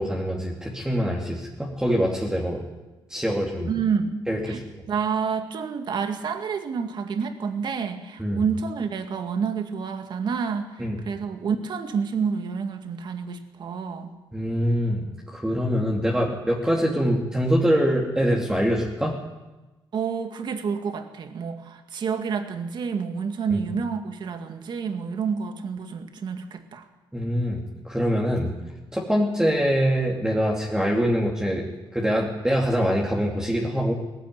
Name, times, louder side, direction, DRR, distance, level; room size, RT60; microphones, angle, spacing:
voice 1, 0.0-2.6 3.1-3.7 4.3-4.6 8.2-8.4 10.8-11.0 14.3-19.1 23.5-23.6 27.1-28.5 28.9-31.6 31.9-33.9, equal, 5° right, -3 dB, 2.9 m, -24 dB
voice 2, 3.7-4.6 4.9-14.1 19.9-26.8, right 6 dB, 60° right, 6 dB, 2.1 m, -29 dB
19.0 x 15.5 x 9.6 m, 1.1 s
cardioid pair, 110°, 9 cm